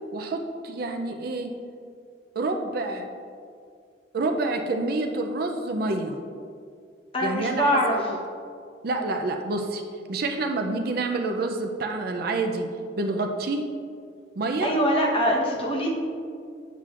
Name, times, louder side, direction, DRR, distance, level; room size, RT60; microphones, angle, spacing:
voice 1, 0.1-1.6 2.4-3.1 4.1-6.2 7.2-8.0 8.8-9.8 10.1-12.7 13.0-13.7 14.4-14.7, right 2 dB, 55° right, 4 dB, 0.4 m, -28 dB
voice 2, 7.1-8.0 14.6-15.9, equal, 30° left, -2 dB, 0.9 m, -23 dB
8.1 x 5.7 x 2.4 m, 2.3 s
head